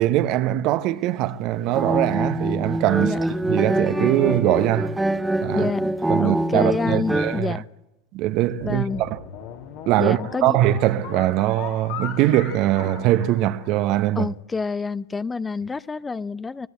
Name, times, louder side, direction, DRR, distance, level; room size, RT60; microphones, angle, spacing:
voice 1, 0.0-5.0 5.4-5.7 6.1-7.6 8.1-9.2 9.9-14.3, right 14 dB, 50° right, 1.0 m, -22 dB
sound 1, 1.7-7.4, right 1 dB, 10° right, 1.0 m, -24 dB
voice 2, 5.5-7.6 8.6-9.0 10.0-10.6 14.2-16.7, left 4 dB, 15° left, 0.8 m, -28 dB
sound 2, 8.6-14.1, left 8 dB, 60° left, 3.6 m, -38 dB
25.5 x 18.5 x 8.6 m
figure-of-eight pair, 75°, 0 cm